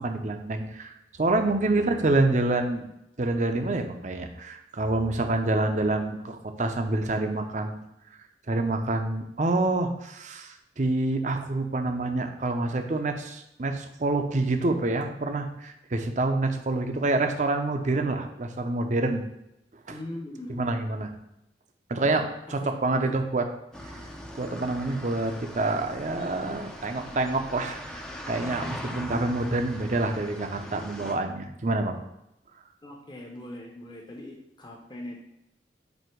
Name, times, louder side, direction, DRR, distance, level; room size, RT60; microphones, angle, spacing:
voice 1, 0.0-2.9 3.2-7.8 8.5-19.2 19.9-20.0 20.5-21.1 21.9-23.4 24.3-32.0, right 2 dB, 40° right, 5 dB, 0.6 m, -27 dB
voice 2, 1.8-2.4 19.9-20.6 22.6-23.1 32.8-35.1, left 1 dB, 25° left, 0 dB, 0.8 m, -40 dB
sound 1, 23.7-31.2, equal, 5° left, 0.5 m, -40 dB
7.8 x 2.7 x 4.5 m, 0.86 s
head